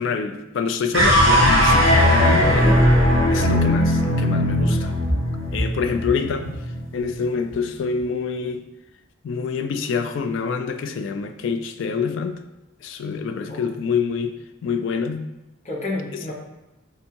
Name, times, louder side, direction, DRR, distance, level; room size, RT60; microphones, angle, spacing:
voice 1, 0.0-2.9 3.3-4.9 5.5-6.5 6.9-8.6 9.2-12.4 12.8-15.3, left 5 dB, 65° left, 7 dB, 0.3 m, -26 dB
sound 1, 0.9-7.3, equal, 55° right, 1.1 m, -18 dB
voice 2, 5.8-6.5 13.5-13.6 15.6-16.3, left 2 dB, 35° left, -4 dB, 0.8 m, -32 dB
3.5 x 3.5 x 2.8 m, 0.99 s
head